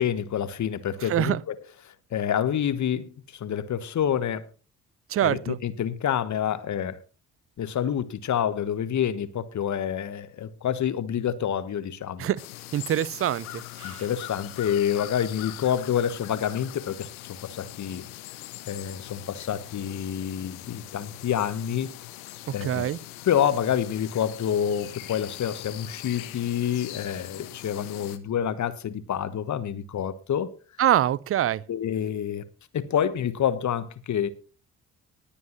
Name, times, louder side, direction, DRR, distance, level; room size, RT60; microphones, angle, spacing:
voice 1, 0.0-1.6 1.8-4.5 5.2-7.0 7.6-12.3 13.8-18.0 18.6-22.0 22.5-22.9 23.2-30.5 31.7-32.4 32.7-34.3, left 9 dB, 40° left, 1.2 m, -28 dB
voice 2, 5.1-5.6 12.2-12.4 12.7-13.5 13.8-14.0 22.6-23.0 30.8-31.6, right 11 dB, 30° right, 0.5 m, -24 dB
sound 1, 12.4-28.2, left 17 dB, 70° left, 1.0 m, -42 dB
20.0 x 8.5 x 3.1 m
figure-of-eight pair, 45°, 43 cm